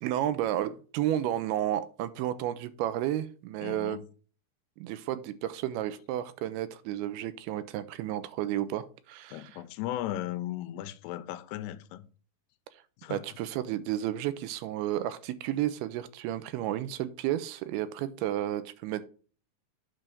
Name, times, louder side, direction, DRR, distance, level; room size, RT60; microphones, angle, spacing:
voice 1, 0.0-4.0 4.8-9.6 13.1-19.0, right 12 dB, 85° right, 2.4 m, -32 dB
voice 2, 3.6-4.0 9.3-12.0 13.0-13.2, left 13 dB, 85° left, 2.6 m, -36 dB
8.9 x 3.2 x 6.7 m
omnidirectional pair, 4.6 m